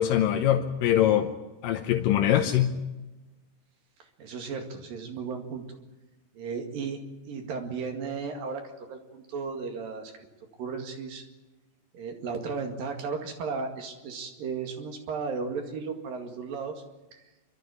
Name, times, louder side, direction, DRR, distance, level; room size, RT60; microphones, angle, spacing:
voice 1, 0.0-1.3 1.6-2.7, left 11 dB, 85° left, 4 dB, 2.6 m, -23 dB
voice 2, 4.2-5.6 6.4-8.6 8.9-10.1 10.6-11.2 11.9-16.8 17.1-17.2, right 5 dB, 85° right, 4 dB, 3.9 m, -35 dB
27.5 x 13.0 x 9.5 m, 1.1 s
omnidirectional pair, 4.0 m